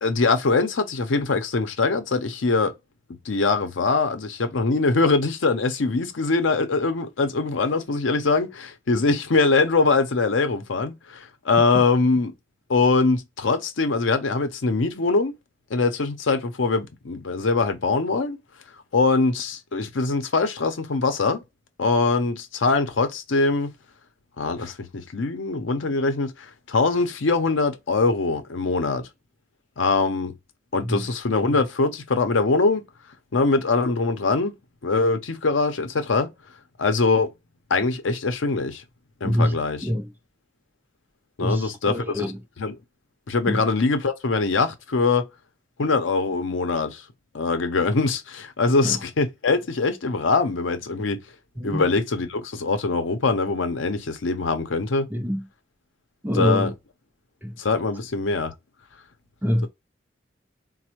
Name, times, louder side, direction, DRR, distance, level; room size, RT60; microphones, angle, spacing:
voice 1, 0.0-2.7 3.2-12.3 12.7-15.4 15.7-18.4 18.9-21.4 21.8-23.7 24.4-29.1 29.8-30.3 30.7-32.8 33.3-34.6 34.8-36.3 36.8-37.3 37.7-38.8 39.2-39.9 41.4-42.3 42.6-42.8 43.3-45.3 45.8-47.0 47.3-51.2 51.6-55.1 56.3-56.7 57.6-58.5, left 3 dB, 90° left, 0.6 m, -23 dB
voice 2, 39.2-39.5 39.8-40.1 41.4-42.4 43.5-43.6 48.8-49.0 51.6-51.8 55.1-55.4 56.2-56.7 57.4-57.5 59.4-59.7, equal, 10° right, 0.4 m, -24 dB
4.2 x 2.1 x 2.9 m
head